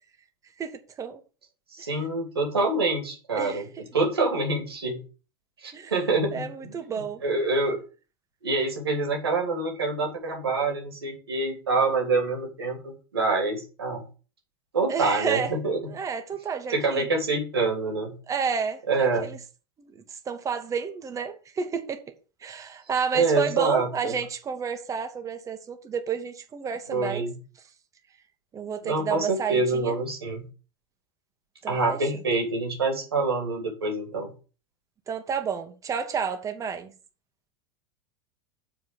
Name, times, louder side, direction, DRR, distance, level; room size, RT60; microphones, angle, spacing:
voice 1, 0.6-1.2 1.8-1.9 3.3-3.6 5.7-5.9 6.3-7.2 14.9-15.5 15.9-17.1 18.3-19.4 19.8-22.0 22.4-27.2 28.5-29.9 31.6-32.0 35.1-36.9, right 6 dB, 25° right, 1.6 m, -31 dB
voice 2, 1.7-3.6 3.9-5.0 5.6-6.8 7.2-7.8 8.4-14.0 14.7-15.9 16.7-18.2 18.9-19.3 23.1-24.1 26.9-27.3 28.8-30.5 31.7-34.3, right 3 dB, 75° right, 2.7 m, -26 dB
7.7 x 4.7 x 6.9 m
figure-of-eight pair, 85°, 13 cm